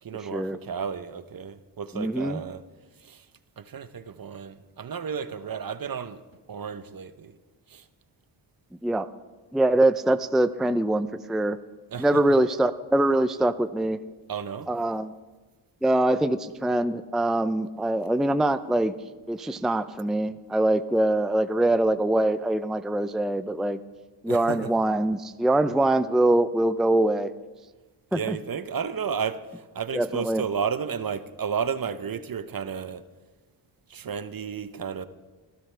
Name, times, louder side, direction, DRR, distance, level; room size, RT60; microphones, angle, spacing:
voice 1, 0.0-2.6 3.0-3.3 3.6-6.2 6.5-7.4 7.7-7.8 11.9-12.1 14.3-14.7 24.3-24.7 28.1-33.0 33.9-35.1, right 6 dB, 45° right, 12 dB, 0.9 m, -32 dB
voice 2, 1.9-2.4 8.8-9.1 9.5-11.6 12.0-14.0 14.7-15.1 15.8-18.9 19.3-23.8 24.2-27.3 28.1-28.4 29.9-30.4, right 1 dB, ahead, 11 dB, 0.5 m, -23 dB
26.5 x 12.5 x 3.4 m, 1.3 s
cardioid pair, 55°, 49 cm